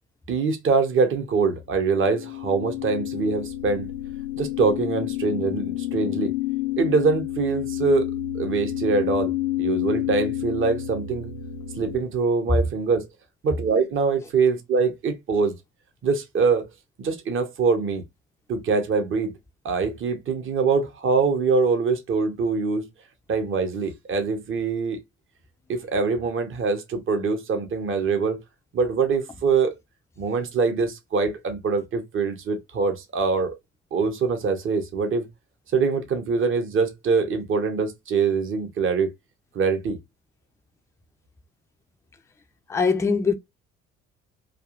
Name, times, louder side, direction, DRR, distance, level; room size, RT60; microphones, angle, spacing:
voice 1, 0.3-3.9 4.4-6.3 6.8-9.3 9.6-11.3 11.8-13.1 13.4-15.5 16.0-16.6 17.0-18.0 18.5-19.3 19.6-22.9 23.3-25.0 25.7-28.4 28.7-29.7 30.2-33.6 33.9-35.3 35.7-39.1 39.5-40.0, right 4 dB, 35° right, 0.8 m, -24 dB
sound 1, 1.9-12.0, left 13 dB, 60° left, 0.5 m, -29 dB
voice 2, 42.7-43.3, left 4 dB, 10° left, 0.4 m, -21 dB
3.4 x 2.3 x 2.4 m
figure-of-eight pair, 45°, 36 cm